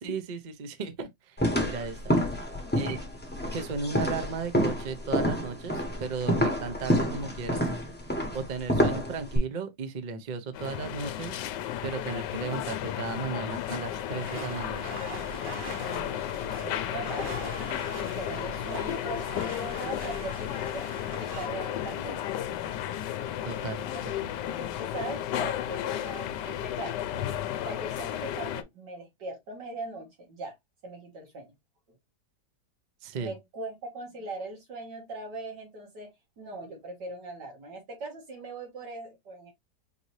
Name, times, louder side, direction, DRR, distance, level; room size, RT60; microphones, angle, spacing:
voice 1, 0.0-2.1 2.7-3.0 3.5-7.7 8.3-11.4 11.8-14.9 23.4-24.3 33.0-33.3, right 5 dB, 55° right, 0.5 m, -35 dB
sound 1, 1.4-9.4, equal, 10° left, 0.6 m, -28 dB
sound 2, 10.5-28.6, left 11 dB, 85° left, 1.2 m, -33 dB
sound 3, 13.9-21.5, right 2 dB, 40° right, 1.0 m, -43 dB
voice 2, 15.8-17.6 17.9-20.9 21.2-22.2 23.6-23.8 24.5-27.3 27.6-30.5 30.8-31.5 33.2-39.5, right 2 dB, 80° right, 2.4 m, -40 dB
5.1 x 2.7 x 3.0 m
omnidirectional pair, 1.8 m